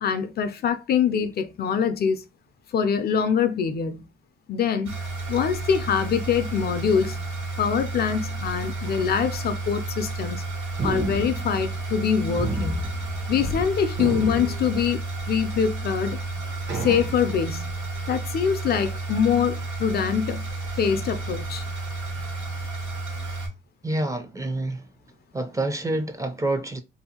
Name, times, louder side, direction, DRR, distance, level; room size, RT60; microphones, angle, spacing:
voice 1, 0.0-2.2 2.7-4.0 4.5-5.0 5.3-7.2 7.6-10.4 10.8-12.8 13.3-16.2 16.8-17.7 18.1-20.4 20.7-21.6, left 7 dB, 50° left, 0.4 m, -24 dB
sound 1, 4.8-23.5, right 3 dB, 85° right, 1.4 m, -32 dB
sound 2, 10.8-12.0 12.4-13.7 13.9-15.2 15.8-15.9 16.7-17.5, right 1 dB, 60° right, 0.9 m, -31 dB
voice 2, 23.8-24.9 25.3-26.8, right 2 dB, 15° right, 0.4 m, -27 dB
2.6 x 2.4 x 2.8 m
cardioid pair, 90°, 20 cm